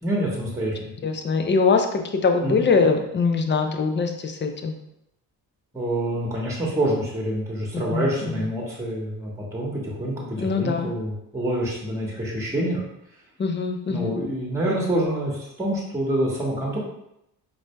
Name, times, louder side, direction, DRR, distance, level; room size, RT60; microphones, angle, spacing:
voice 1, 0.0-0.9 2.4-2.6 5.7-12.8 13.9-16.8, right 1 dB, 5° right, -3 dB, 1.1 m, -26 dB
voice 2, 1.0-4.8 7.9-8.4 10.4-10.9 13.4-14.2, left 4 dB, 25° left, 5 dB, 0.5 m, -23 dB
4.7 x 2.7 x 2.2 m, 0.82 s
cardioid pair, 70°, 43 cm